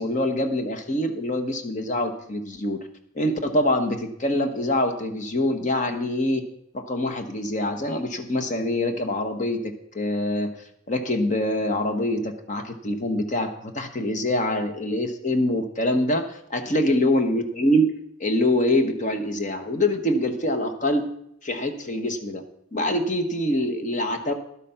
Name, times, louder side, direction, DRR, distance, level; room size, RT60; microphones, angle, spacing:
voice 1, 0.0-2.8 3.1-6.4 6.7-10.5 10.9-21.1 21.4-22.4 22.7-24.3, left 1 dB, 40° left, 7 dB, 1.1 m, -25 dB
11.5 x 8.3 x 5.6 m, 0.74 s
head